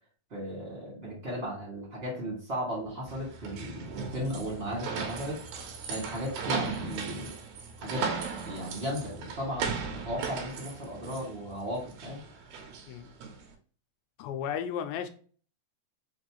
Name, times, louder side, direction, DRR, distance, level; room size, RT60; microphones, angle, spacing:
voice 1, 0.3-5.4 5.9-7.3 7.8-8.1 8.4-12.2, equal, 25° right, -4 dB, 1.3 m, -35 dB
sound 1, 3.1-13.5, right 5 dB, 75° right, 2.7 m, -37 dB
voice 2, 14.2-15.1, left 8 dB, 85° left, 7 dB, 2.3 m, -34 dB
6.0 x 2.7 x 2.9 m, 0.42 s
omnidirectional pair, 4.4 m